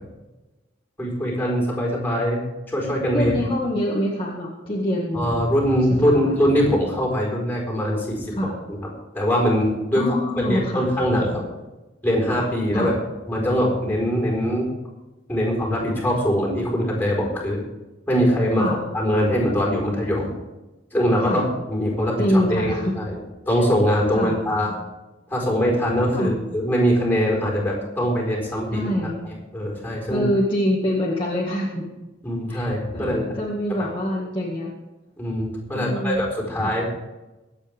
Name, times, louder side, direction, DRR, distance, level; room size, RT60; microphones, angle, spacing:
voice 1, 1.0-3.4 5.1-8.3 9.1-10.0 10.4-11.4 12.0-12.9 13.3-14.7 15.3-17.6 18.1-18.7 18.9-20.4 20.9-21.4 21.7-23.1 23.5-24.7 25.3-28.9 29.5-30.3 32.2-33.2 33.8-33.9 35.2-36.9, equal, 10° left, -2 dB, 4.5 m, -22 dB
voice 2, 3.1-5.3 6.0-6.3 8.3-8.5 9.9-10.9 12.7-12.9 18.6-18.8 21.2-21.4 22.2-22.9 24.1-24.4 26.1-26.3 28.7-29.2 30.1-31.9 32.5-34.7 35.7-36.3 36.6-36.8, equal, 25° left, -4 dB, 1.9 m, -25 dB
23.0 x 8.9 x 3.6 m, 1.1 s
head